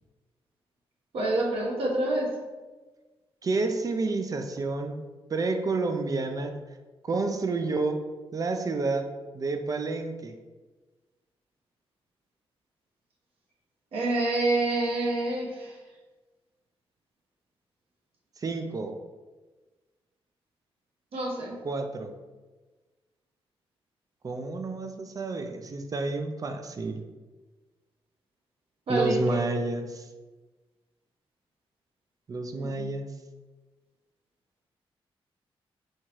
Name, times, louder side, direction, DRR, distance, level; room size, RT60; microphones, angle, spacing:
voice 1, 1.1-2.3 13.9-15.7 21.1-21.5 28.9-29.4 32.5-32.8, right 2 dB, 75° right, -3 dB, 1.2 m, -27 dB
voice 2, 3.4-5.0 5.3-6.5 7.0-8.0 8.3-9.1 9.3-10.3 18.4-19.0 21.6-22.1 24.2-27.0 28.9-30.1 32.3-33.1, right 3 dB, 35° right, 6 dB, 0.5 m, -29 dB
4.4 x 3.5 x 3.1 m, 1.3 s
cardioid pair, 90°, 10 cm